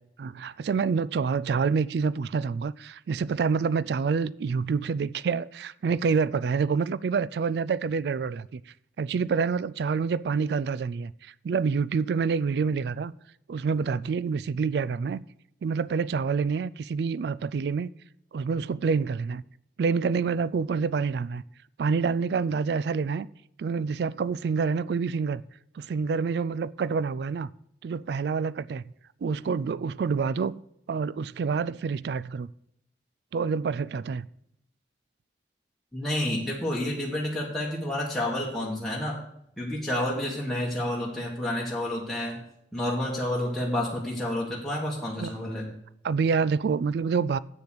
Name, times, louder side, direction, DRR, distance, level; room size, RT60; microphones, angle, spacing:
voice 1, 0.2-8.6 9.0-13.1 13.5-15.2 15.6-17.9 18.3-19.4 19.8-21.4 21.8-23.3 23.6-25.4 25.8-27.5 27.8-28.8 29.2-30.6 30.9-32.5 33.3-34.3 45.2-45.3 46.0-47.4, right 5 dB, 65° right, 0.3 m, -27 dB
voice 2, 35.9-39.2 39.6-42.4 42.7-45.7, left 1 dB, ahead, 1.6 m, -29 dB
8.2 x 6.8 x 6.3 m
head